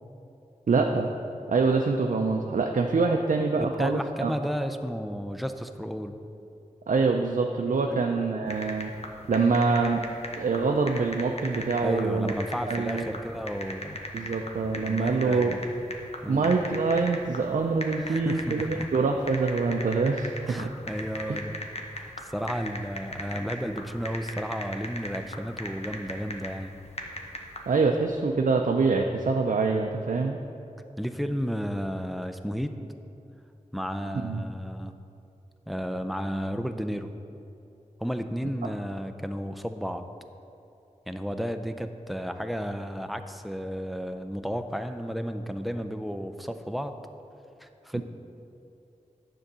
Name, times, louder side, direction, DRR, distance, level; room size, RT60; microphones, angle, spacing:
voice 1, 0.7-1.1 1.5-4.3 6.9-8.9 9.3-10.0 10.4-12.3 12.7-13.0 14.1-15.6 16.3-20.7 21.3-21.4 27.7-30.4 34.2-34.4, right 4 dB, 75° right, 2 dB, 0.5 m, -25 dB
voice 2, 3.6-6.2 7.9-8.1 11.8-14.0 14.8-15.6 16.2-16.5 18.0-18.9 20.5-21.6 21.9-26.8 31.0-32.8 33.7-34.9 35.7-37.1 38.0-40.0 41.1-47.0 47.6-48.0, equal, ahead, 7 dB, 0.4 m, -33 dB
sound 1, 8.5-27.8, left 1 dB, 50° left, 0.9 m, -39 dB
9.8 x 3.8 x 6.7 m, 2.8 s
wide cardioid pair, 80°, 13 cm